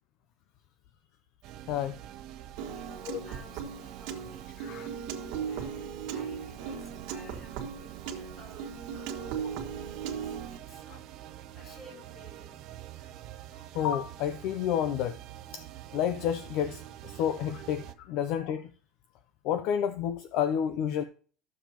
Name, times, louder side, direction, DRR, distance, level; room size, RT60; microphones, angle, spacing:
sound 1, 1.4-17.9, right 12 dB, 45° right, 0.7 m, -46 dB
Piano, 2.6-10.6, right 7 dB, 60° right, 1.6 m, -38 dB
voice 1, 2.7-8.7 8.9-10.9 11.2-11.3 11.5-12.6, left 1 dB, 25° left, 3.5 m, -55 dB
voice 2, 13.7-15.2 15.5-15.6 15.9-18.7 19.4-21.0, left 9 dB, 50° left, 0.5 m, -30 dB
13.0 x 7.1 x 2.9 m
cardioid pair, 165°, 0 cm